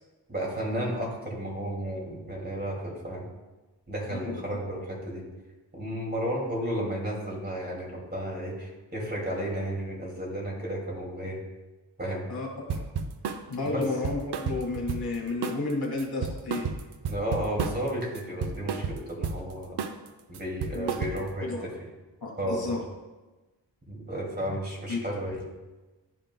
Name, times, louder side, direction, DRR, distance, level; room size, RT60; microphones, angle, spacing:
voice 1, 0.3-3.2 3.9-5.2 5.7-11.4 12.0-12.3 13.6-13.8 17.1-19.8 20.3-21.7 22.4-22.8 23.9-25.4, equal, 20° right, -3 dB, 2.4 m, -33 dB
voice 2, 4.1-4.4 12.3-12.8 13.5-16.7 20.7-20.9 21.4-21.6 22.2-22.8 24.9-25.0, left 3 dB, 55° left, -1 dB, 1.9 m, -32 dB
sound 1, 12.7-13.4 13.8-15.2 15.4-15.7 16.0-17.9 18.2-19.4 19.8-20.1 20.3-21.4, right 6 dB, 60° right, 0.7 m, -32 dB
12.0 x 5.1 x 2.2 m, 1.2 s
cardioid pair, 70°, 44 cm